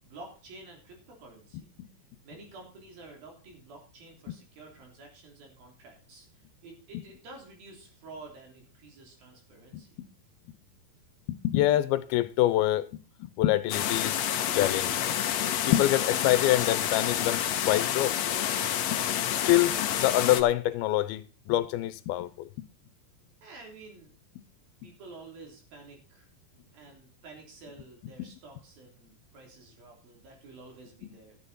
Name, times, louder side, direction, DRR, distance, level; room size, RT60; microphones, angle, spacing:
voice 1, 0.0-1.7 2.2-9.9 23.4-24.2 24.8-26.3 26.7-31.4, right 3 dB, 70° right, 5.1 m, -50 dB
voice 2, 11.3-12.9 13.2-14.2 14.5-18.1 18.9-19.0 19.3-19.7 20.0-21.2 21.5-22.5 31.0-31.1, left 14 dB, 90° left, 2.7 m, -26 dB
sound 1, 13.7-20.4, left 10 dB, 75° left, 1.6 m, -29 dB
13.0 x 9.8 x 4.2 m
omnidirectional pair, 4.3 m